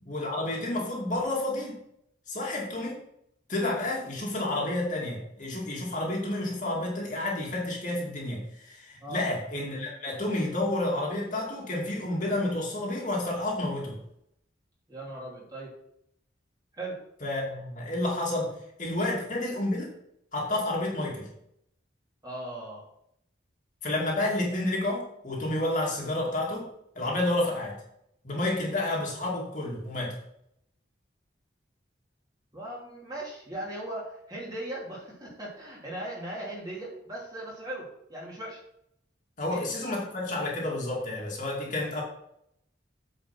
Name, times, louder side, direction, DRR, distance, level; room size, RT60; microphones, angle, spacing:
voice 1, 0.0-1.8 2.3-3.0 3.5-14.0 17.2-18.5 18.8-19.9 20.3-21.3 23.8-26.7 26.9-27.8 28.2-30.2 39.4-42.0, left 1 dB, 40° left, -3 dB, 2.5 m, -30 dB
voice 2, 14.9-15.7 16.7-17.0 19.1-19.2 22.2-22.8 32.5-38.6 39.5-39.8, right 1 dB, 20° right, -5 dB, 3.2 m, -38 dB
8.7 x 5.5 x 6.0 m, 0.75 s
head